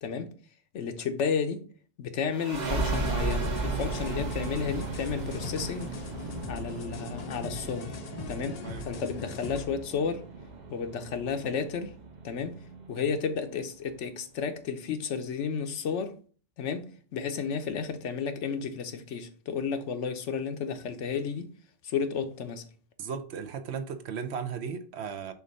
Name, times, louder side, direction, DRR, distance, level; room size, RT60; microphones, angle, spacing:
voice 1, 0.7-1.7 2.0-5.9 6.5-8.0 8.3-10.2 10.7-11.9 12.2-12.6 12.9-16.2 16.6-21.5 21.8-22.6, left 6 dB, 80° left, 1.1 m, -32 dB
sound 1, 2.3-13.6, right 3 dB, 45° right, 0.8 m, -35 dB
sound 2, 2.5-9.7, left 5 dB, 55° left, 0.4 m, -41 dB
voice 2, 23.0-25.3, right 6 dB, 70° right, 0.9 m, -36 dB
6.9 x 2.6 x 5.3 m
omnidirectional pair, 1.2 m